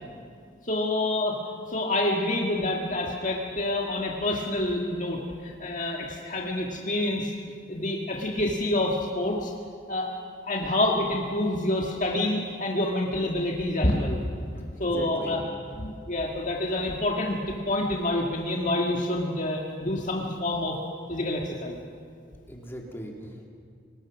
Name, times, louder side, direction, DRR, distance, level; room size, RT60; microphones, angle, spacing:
voice 1, 0.6-1.4 1.7-7.3 7.7-9.5 9.9-10.1 10.4-14.3 14.5-15.4 15.8-20.8 21.1-21.8, left 1 dB, 45° left, -1 dB, 1.8 m, -27 dB
voice 2, 14.7-15.4 22.5-23.5, equal, 15° left, 0 dB, 2.7 m, -40 dB
24.0 x 20.0 x 6.1 m, 2.2 s
head